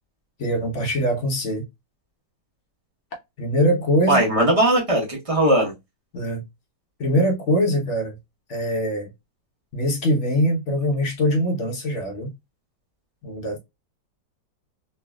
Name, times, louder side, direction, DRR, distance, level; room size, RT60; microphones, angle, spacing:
voice 1, 0.4-1.6 3.4-4.3 6.1-6.4 7.0-8.2 8.5-9.1 9.7-12.3 13.2-13.6, equal, 55° left, 0.8 m, -22 dB
voice 2, 4.1-5.7, right 1 dB, 25° right, 0.8 m, -19 dB
3.2 x 2.4 x 2.2 m
omnidirectional pair, 1.9 m